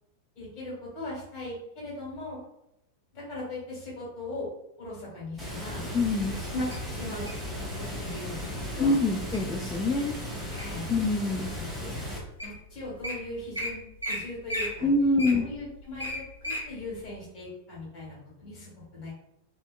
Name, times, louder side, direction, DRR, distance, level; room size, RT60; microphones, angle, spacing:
voice 1, 0.3-2.4 3.1-4.5 4.8-5.8 6.3-7.3 7.6-8.9 10.5-10.9 11.5-12.1 12.4-14.9 15.3-19.1, left 2 dB, 40° left, -5 dB, 1.4 m, -39 dB
Water, 5.4-12.2, equal, 5° right, 0.8 m, -36 dB
voice 2, 5.9-6.4 8.7-10.1 10.9-11.5 14.8-15.4, left 2 dB, 15° left, -1 dB, 0.3 m, -25 dB
Wild animals, 6.7-7.5 8.2-8.4 8.9-9.4 9.9-10.9 11.4-11.5 12.1-12.2 12.4-12.6 12.8-13.1 13.5-13.7 14.0-14.2 14.5-16.6 17.1-17.2, equal, 85° right, 0.7 m, -34 dB
2.6 x 2.1 x 2.3 m, 0.83 s
figure-of-eight pair, 90°, 0 cm